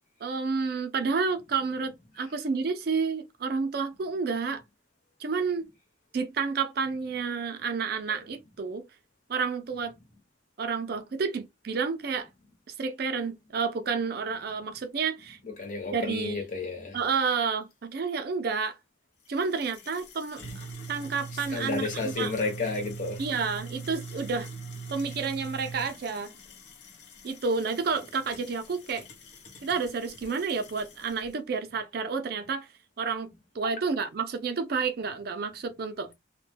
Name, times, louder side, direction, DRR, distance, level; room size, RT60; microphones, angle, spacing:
voice 1, 0.2-4.6 5.2-5.7 6.1-8.8 9.3-9.9 10.6-12.3 12.8-15.4 15.9-16.4 16.9-18.8 19.3-22.3 23.2-24.5 24.9-26.3 27.2-29.1 29.6-32.7 33.0-33.3 33.5-36.1, right 5 dB, 55° right, 0.4 m, -30 dB
voice 2, 15.4-17.0 21.3-23.2 33.6-33.7, left 3 dB, 45° left, 1.0 m, -32 dB
sound 1, 19.3-31.3, right 3 dB, 70° left, 0.7 m, -43 dB
2.1 x 2.1 x 3.3 m
head